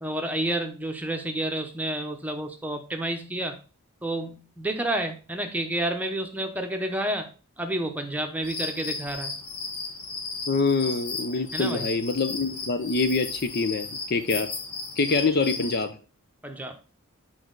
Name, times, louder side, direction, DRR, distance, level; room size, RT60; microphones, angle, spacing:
voice 1, 0.0-3.6 4.0-7.3 7.6-9.3 11.5-11.9 15.1-15.5 16.4-16.8, right 1 dB, 5° right, 4 dB, 0.8 m, -30 dB
sound 1, 8.4-15.8, left 4 dB, 90° left, 1.4 m, -35 dB
voice 2, 10.5-14.5 15.0-15.9, left 3 dB, 45° left, 10 dB, 0.6 m, -25 dB
8.4 x 4.6 x 3.9 m, 0.35 s
head